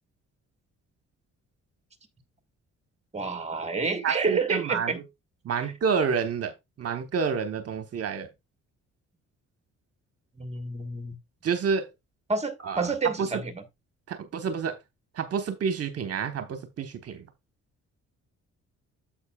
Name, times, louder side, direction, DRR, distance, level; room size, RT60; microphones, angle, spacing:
voice 1, 3.1-5.0 10.4-11.2 12.3-13.5, right 4 dB, 20° right, 1.5 m, -29 dB
voice 2, 4.0-5.0 5.4-6.5 6.8-8.3 11.4-11.9 12.6-12.9 13.2-13.4 14.1-14.8 15.1-17.2, right 6 dB, 55° right, 1.1 m, -29 dB
9.5 x 7.5 x 2.3 m
cardioid pair, 90°, 30 cm